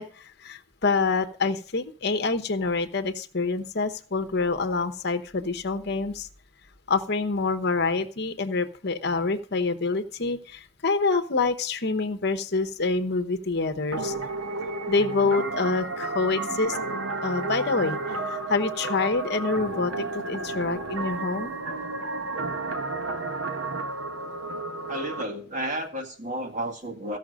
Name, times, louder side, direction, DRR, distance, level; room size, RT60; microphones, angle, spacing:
voice 1, 0.0-6.3 6.9-14.1 14.9-16.8 17.2-21.6, left 3 dB, 55° left, 8 dB, 1.0 m, -26 dB
sound 1, 13.9-25.2, right 3 dB, 75° right, 1.1 m, -32 dB
voice 2, 24.9-27.2, right 1 dB, 40° right, 4 dB, 1.7 m, -32 dB
15.0 x 5.9 x 6.3 m, 0.43 s
head